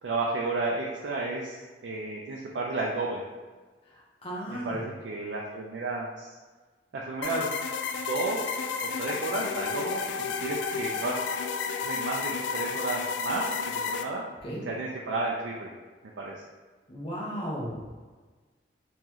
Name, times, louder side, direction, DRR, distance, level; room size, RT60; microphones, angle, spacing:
voice 1, 0.0-3.2 4.5-6.4 6.9-7.6 8.0-11.2 11.8-14.2 14.7-15.7 16.2-16.5, right 2 dB, 75° right, -3 dB, 0.4 m, -32 dB
voice 2, 3.9-4.9 14.4-14.6 16.9-17.9, equal, 30° left, -4 dB, 0.8 m, -35 dB
sound 1, 7.2-14.0, left 6 dB, 80° left, 0.3 m, -32 dB
3.7 x 3.0 x 2.9 m, 1.4 s
head